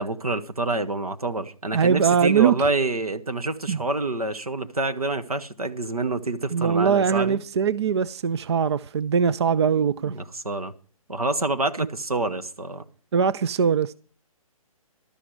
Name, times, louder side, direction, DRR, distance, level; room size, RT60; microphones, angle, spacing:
voice 1, 0.0-7.4 9.8-10.7 11.1-12.8, right 2 dB, 85° right, 1.5 m, -27 dB
voice 2, 1.7-2.6 3.7-3.8 6.5-10.1 13.1-14.0, right 7 dB, 45° right, 0.5 m, -21 dB
12.5 x 12.5 x 4.8 m
figure-of-eight pair, 140°, 19 cm